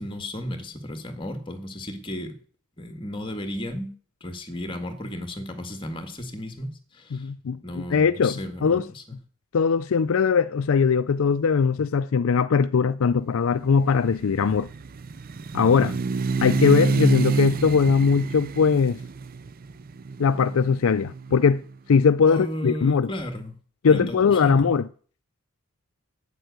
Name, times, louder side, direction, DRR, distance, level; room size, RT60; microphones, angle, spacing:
voice 1, 0.0-2.4 2.8-3.9 4.2-7.3 7.6-9.2 15.6-16.0 22.3-23.6 23.8-24.7, left 1 dB, 25° left, 1.8 m, -34 dB
voice 2, 7.1-8.8 9.5-14.7 15.5-15.9 16.4-19.0 20.2-21.6 21.9-23.1 23.8-24.8, left 5 dB, 70° left, 0.4 m, -20 dB
sound 1, 13.6-21.6, right 3 dB, 40° right, 0.4 m, -28 dB
9.2 x 7.9 x 8.0 m
head